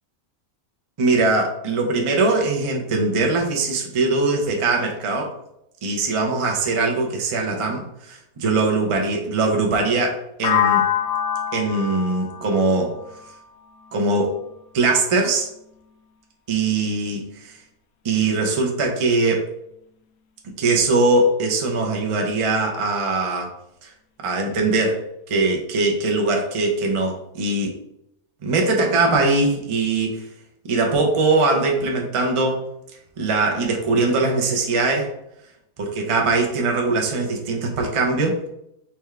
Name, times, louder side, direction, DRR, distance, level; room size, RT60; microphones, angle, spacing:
voice 1, 1.0-5.3 5.8-10.8 11.5-13.0 13.9-14.4 14.7-15.5 16.5-17.5 18.0-19.5 20.6-23.5 24.2-27.7 28.4-30.2 30.6-32.6 33.2-35.1 35.8-38.4, right 3 dB, 35° right, 1 dB, 0.5 m, -21 dB
sound 1, 10.4-14.3, left 9 dB, 80° left, 1.0 m, -25 dB
4.4 x 3.5 x 3.3 m, 0.78 s
omnidirectional pair, 1.5 m